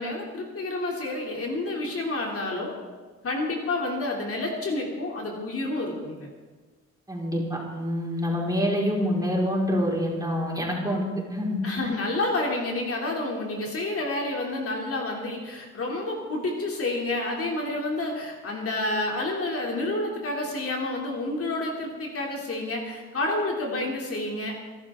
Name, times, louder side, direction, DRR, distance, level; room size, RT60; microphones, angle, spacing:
voice 1, 0.0-2.7 3.2-6.3 11.6-24.6, left 2 dB, 50° left, 0 dB, 3.0 m, -29 dB
voice 2, 7.1-11.9, equal, 10° right, -3 dB, 4.7 m, -26 dB
24.5 x 12.0 x 3.7 m, 1.4 s
cardioid pair, 90°, 30 cm